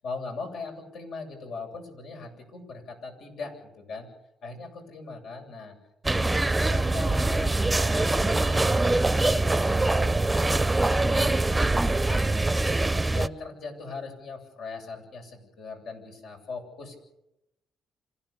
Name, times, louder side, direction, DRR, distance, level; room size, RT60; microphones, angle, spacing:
voice 1, 0.0-4.1 4.4-5.7 6.2-12.8 13.1-17.0, left 4 dB, 75° left, 2 dB, 7.8 m, -40 dB
sound 1, 6.0-13.3, right 2 dB, 15° right, 0.8 m, -23 dB
27.0 x 16.0 x 7.0 m, 0.85 s
cardioid pair, 90°, 0 cm